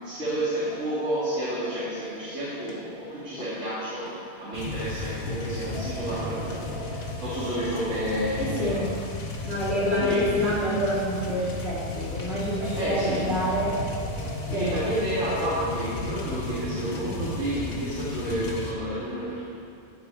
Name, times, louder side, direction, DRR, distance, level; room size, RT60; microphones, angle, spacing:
voice 1, 0.0-8.8 10.0-10.2 12.5-13.3 14.2-19.4, right 1 dB, 90° right, -11 dB, 3.3 m, -30 dB
sound 1, 0.7-4.9 5.7-11.7 12.6-17.9, right 1 dB, 5° right, 2.0 m, -44 dB
sound 2, 1.9-2.3 2.7-2.9 3.4-3.7 4.0-4.3 4.8-5.0 5.7-6.0 6.5-6.7 7.3-7.7 8.2-8.5 8.9-9.3 9.7-10.0 10.5-10.8 11.3-11.5 12.1-12.4 13.0-13.3, left 1 dB, 50° left, 1.7 m, -45 dB
sound 3, 4.5-18.7, left 2 dB, 90° left, 1.6 m, -34 dB
voice 2, 8.4-8.9 9.4-13.8 14.5-14.8, equal, 60° right, -8 dB, 3.6 m, -27 dB
16.0 x 8.3 x 4.9 m, 2.6 s
omnidirectional pair, 1.2 m